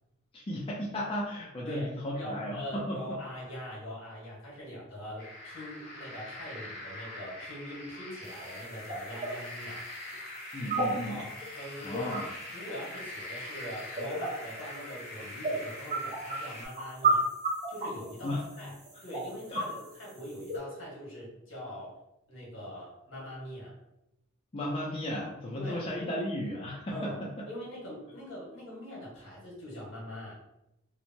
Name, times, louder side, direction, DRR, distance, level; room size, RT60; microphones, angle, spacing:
voice 1, 0.3-3.0 10.5-11.2 11.8-12.3 18.2-18.4 19.5-19.6 24.5-27.3, left 1 dB, 30° left, -4 dB, 0.4 m, -34 dB
voice 2, 2.2-9.8 11.1-12.2 12.5-17.3 17.7-18.7 19.0-22.0 22.3-23.7 25.5-26.2 26.9-30.3, equal, 70° left, -5 dB, 1.3 m, -42 dB
sound 1, 5.2-16.7, left 1 dB, 45° left, 0.9 m, -43 dB
sound 2, 8.2-20.6, right 2 dB, 35° right, 0.8 m, -35 dB
3.0 x 2.1 x 2.6 m, 0.87 s
head